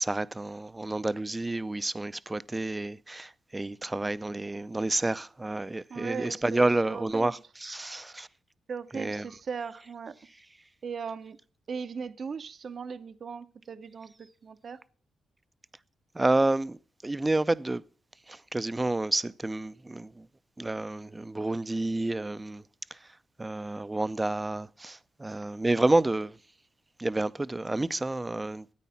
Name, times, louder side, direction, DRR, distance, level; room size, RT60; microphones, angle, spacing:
voice 1, 0.0-8.3 8.9-9.3 16.1-16.8 17.0-17.8 18.3-20.3 20.6-22.6 22.9-23.1 23.4-26.4 27.0-28.7, right 2 dB, 20° right, 0.5 m, -29 dB
voice 2, 5.9-7.3 8.7-10.2 10.8-11.4 11.7-14.8, right 6 dB, 50° right, 0.7 m, -38 dB
13.5 x 9.2 x 5.7 m
cardioid pair, 75°, 0 cm